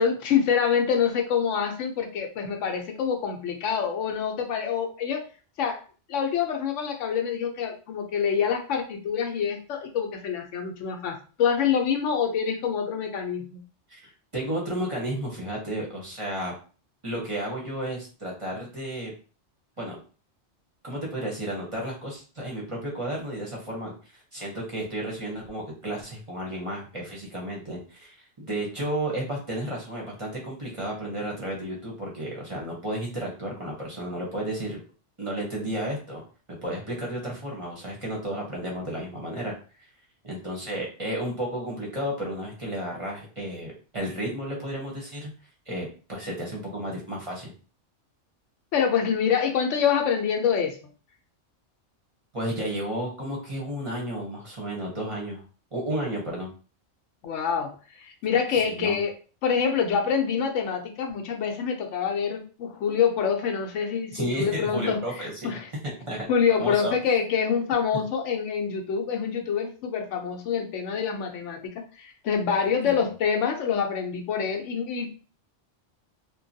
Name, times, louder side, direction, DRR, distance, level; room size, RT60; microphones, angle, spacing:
voice 1, 0.0-5.2 5.6-5.8 6.1-13.6 48.7-50.8 57.2-57.8 58.0-59.1 59.4-65.7 66.3-75.1, left 7 dB, 85° left, 4 dB, 1.0 m, -26 dB
voice 2, 13.9-16.5 17.0-19.1 19.8-20.0 20.8-23.9 24.3-34.8 35.2-36.2 36.6-39.5 40.2-45.3 45.7-47.5 52.3-55.4 55.7-56.5 58.5-59.0 64.1-65.6 66.0-66.9 72.8-73.0, right 1 dB, 30° right, -3 dB, 0.7 m, -32 dB
3.0 x 2.2 x 2.6 m, 0.37 s
omnidirectional pair, 1.2 m